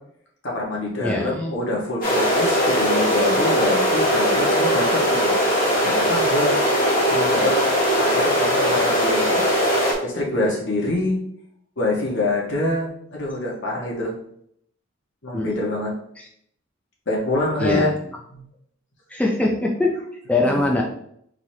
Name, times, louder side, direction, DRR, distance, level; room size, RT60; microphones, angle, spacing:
voice 1, 0.4-5.3 5.8-6.5 7.1-7.5 7.9-9.4 10.0-11.2 11.8-14.1 15.2-15.9 17.1-17.9 18.3-18.4 20.4-20.6, left 2 dB, 65° left, -3 dB, 1.5 m, -25 dB
voice 2, 1.0-1.5 15.3-15.6 16.2-16.3 17.6-17.9 19.1-19.9 20.3-20.8, left 2 dB, 5° left, -2 dB, 0.5 m, -22 dB
sound 1, 2.0-9.9, equal, 45° left, 1.6 m, -20 dB
4.7 x 3.9 x 2.8 m, 0.68 s
head